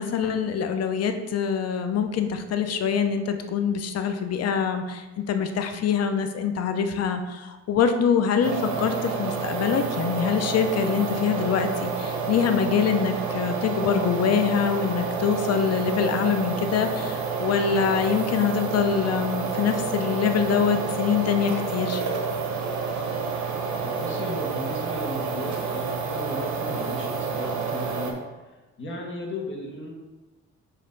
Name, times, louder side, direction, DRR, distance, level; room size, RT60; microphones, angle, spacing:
voice 1, 0.0-22.0, left 7 dB, 55° left, 7 dB, 0.7 m, -24 dB
sound 1, 8.4-28.1, right 5 dB, 70° right, 1.1 m, -29 dB
voice 2, 23.8-28.2 28.4-29.9, left 1 dB, 40° left, -1 dB, 1.6 m, -35 dB
5.6 x 3.2 x 5.3 m, 1.2 s
cardioid pair, 90°, 30 cm